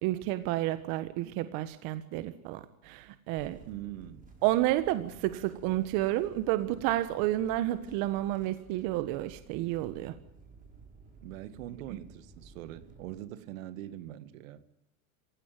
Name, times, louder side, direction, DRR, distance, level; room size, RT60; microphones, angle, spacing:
voice 1, 0.0-3.6 4.4-10.1 11.9-12.0, right 15 dB, 50° right, 1.5 m, -30 dB
sound 1, 3.4-13.1, right 3 dB, 20° right, 7.4 m, -54 dB
voice 2, 3.7-4.3 11.2-14.6, right 13 dB, 65° right, 2.0 m, -43 dB
26.0 x 16.5 x 9.3 m
supercardioid pair, 125°, 42 cm